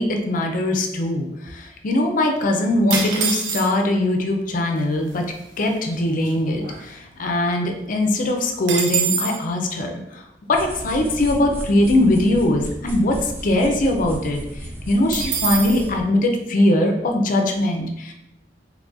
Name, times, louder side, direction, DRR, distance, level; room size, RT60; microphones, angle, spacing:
voice 1, 0.0-10.2 10.5-14.4 14.9-18.1, left 1 dB, 50° left, 3 dB, 0.5 m, -21 dB
sound 1, 2.9-4.0 4.8-4.9 5.1-5.4 5.9-7.3 7.7-7.8 8.0-9.4 15.1-15.8, right 6 dB, 85° right, 0.6 m, -25 dB
sound 2, 10.5-16.0, equal, 15° right, 0.5 m, -34 dB
3.8 x 3.0 x 2.4 m, 0.84 s
head